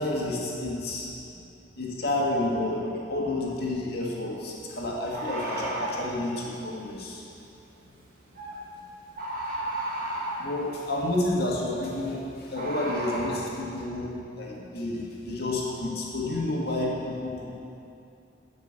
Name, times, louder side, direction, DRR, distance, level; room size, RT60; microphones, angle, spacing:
voice 1, 0.0-1.4 1.8-7.2 10.4-17.5, left 2 dB, 55° left, -3 dB, 1.9 m, -30 dB
Bird, 3.4-3.5 5.1-6.1 8.3-8.6 9.1-10.5 12.5-13.4, right 1 dB, 50° right, 2.2 m, -33 dB
9.7 x 6.3 x 7.8 m, 2.7 s
head